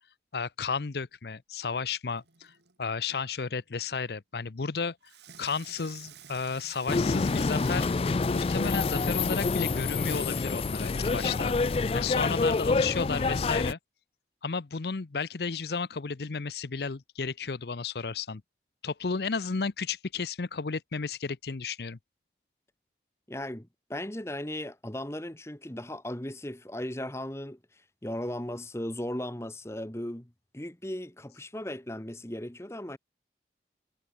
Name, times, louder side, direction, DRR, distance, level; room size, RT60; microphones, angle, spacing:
voice 1, 0.3-2.5 2.8-5.0 5.4-11.5 11.9-13.8 14.4-18.4 18.8-22.0, left 5 dB, 65° left, 0.7 m, -33 dB
Water tap faucet / Sink (filling or washing), 2.1-2.8 5.0-9.0 9.6-9.7, right 9 dB, 80° right, 3.2 m, -51 dB
sound 1, 6.9-13.7, left 3 dB, 35° left, 0.4 m, -27 dB
voice 2, 23.3-27.6 28.0-33.0, left 1 dB, 15° left, 1.3 m, -37 dB
head